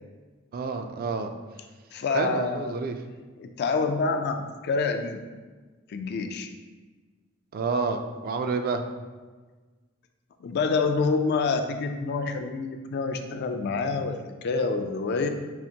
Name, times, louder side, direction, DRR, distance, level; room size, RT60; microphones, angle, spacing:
voice 1, 0.5-1.3 2.1-3.0 7.5-8.8, right 4 dB, 45° right, 6 dB, 0.3 m, -29 dB
voice 2, 1.9-2.7 3.4-5.2 5.9-6.5 10.4-15.3, left 4 dB, 55° left, 6 dB, 0.3 m, -27 dB
5.6 x 2.5 x 2.7 m, 1.3 s
head